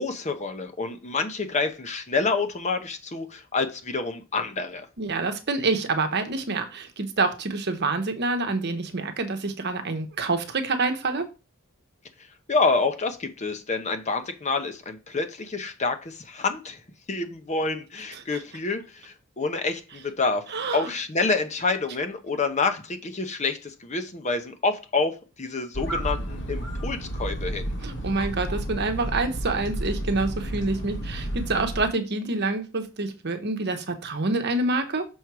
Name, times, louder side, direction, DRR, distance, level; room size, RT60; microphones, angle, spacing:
voice 1, 0.0-4.9 12.5-16.8 17.1-20.4 20.7-27.7, left 3 dB, 35° left, 7 dB, 0.8 m, -28 dB
voice 2, 5.0-11.3 18.3-18.4 20.5-20.9 27.8-35.0, right 3 dB, 50° right, 7 dB, 1.0 m, -27 dB
sound 1, 25.7-31.9, right 1 dB, 55° left, 1.8 m, -31 dB
6.4 x 4.4 x 4.7 m, 0.30 s
head